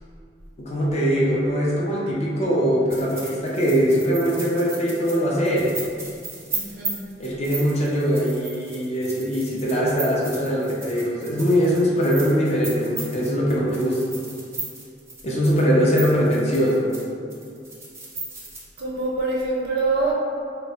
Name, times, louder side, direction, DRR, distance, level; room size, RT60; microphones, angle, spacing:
voice 1, 0.6-5.8 7.2-14.0 15.2-16.9, equal, 35° left, -4 dB, 0.4 m, -21 dB
sound 1, 2.9-17.0 17.3-18.6, right 3 dB, 15° right, 0.5 m, -35 dB
voice 2, 6.5-7.0 18.8-20.1, right 3 dB, 60° right, -4 dB, 0.5 m, -25 dB
2.2 x 2.0 x 3.7 m, 2.4 s
head